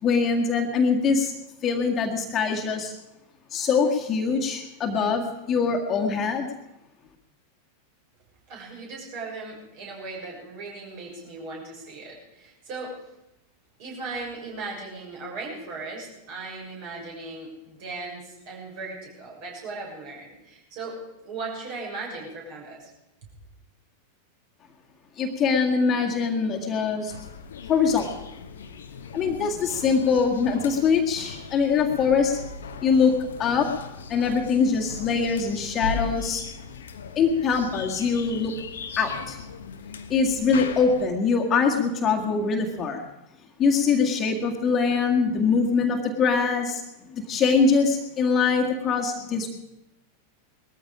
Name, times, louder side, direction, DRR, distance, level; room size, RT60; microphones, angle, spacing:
voice 1, 0.0-1.3 1.6-2.9 3.5-6.5 25.2-27.1 27.7-28.1 29.1-32.4 32.8-33.7 34.1-36.4 37.2-38.5 39.0-39.4 40.1-43.0 43.6-46.8 47.1-49.5, left 5 dB, 30° left, 2 dB, 2.0 m, -23 dB
voice 2, 8.5-12.9 13.8-21.0 21.2-22.9 23.2-23.3, right 3 dB, 45° right, -1 dB, 6.5 m, -37 dB
sound 1, 27.1-41.1, left 5 dB, 65° left, 1.1 m, -38 dB
20.0 x 14.0 x 5.0 m, 0.89 s
figure-of-eight pair, 90°, 0 cm